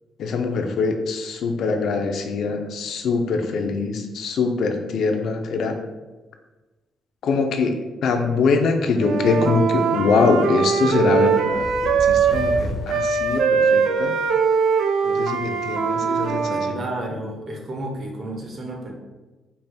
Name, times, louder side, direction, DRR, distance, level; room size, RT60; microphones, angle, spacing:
voice 1, 0.2-5.8 7.2-14.2 15.0-16.8, left 4 dB, 70° left, 5 dB, 0.5 m, -23 dB
Wind instrument woodwind instrument, 9.0-12.6 12.9-16.8, right 5 dB, 80° right, 0.4 m, -21 dB
sound 1, 11.4-14.1, equal, 15° right, 1.4 m, -33 dB
voice 2, 16.7-18.9, right 1 dB, 50° right, 1 dB, 1.0 m, -31 dB
5.4 x 4.1 x 2.2 m, 1.2 s
cardioid pair, 90°, 0 cm